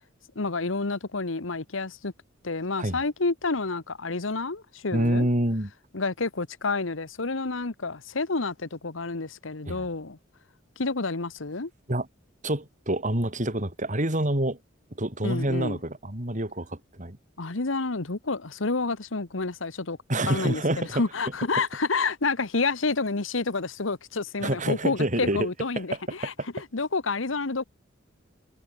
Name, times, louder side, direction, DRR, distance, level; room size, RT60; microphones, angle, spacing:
voice 1, 0.3-2.1 2.4-5.3 5.9-10.2 10.8-11.7 15.2-15.8 17.4-20.0 20.3-27.6, left 3 dB, 85° left, 1.3 m, -29 dB
voice 2, 4.9-5.7 9.6-9.9 11.9-12.1 12.4-14.6 14.9-17.2 20.1-21.0 24.4-25.5 25.9-26.0, right 1 dB, 40° right, 4.9 m, -27 dB
head